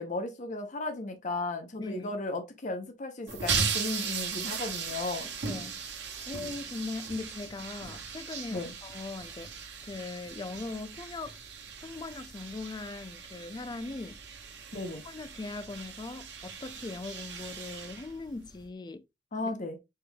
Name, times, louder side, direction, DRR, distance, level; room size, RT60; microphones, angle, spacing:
voice 1, 0.0-5.3 8.5-8.7 14.7-15.0 19.3-19.8, left 2 dB, 45° left, 0.7 m, -35 dB
voice 2, 1.8-2.2 5.4-5.8 6.3-11.4 11.8-14.2 15.0-19.1, left 3 dB, 25° left, 0.3 m, -40 dB
sound 1, 3.3-18.7, right 6 dB, 70° right, 1.0 m, -38 dB
4.4 x 3.4 x 2.3 m
head